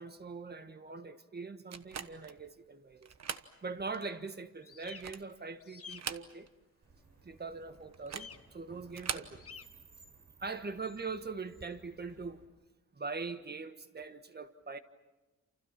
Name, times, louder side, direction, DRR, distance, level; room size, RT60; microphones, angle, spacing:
voice 1, 0.0-3.1 3.6-6.5 7.2-9.4 10.4-12.4 12.9-14.8, right 4 dB, 35° right, 1.5 m, -42 dB
sound 1, 1.7-2.4 3.0-3.5 3.9-4.0 4.7-5.4 5.8-6.6 6.9-7.0 7.9-8.4 8.9-9.3, right 7 dB, 60° right, 1.2 m, -41 dB
sound 2, 4.6-5.0 5.6-6.0 8.1-8.4 9.4-9.6, left 6 dB, 50° left, 1.4 m, -49 dB
sound 3, 6.8-12.4, right 4 dB, 80° right, 6.5 m, -60 dB
28.5 x 28.5 x 6.0 m
wide cardioid pair, 120°, 30 cm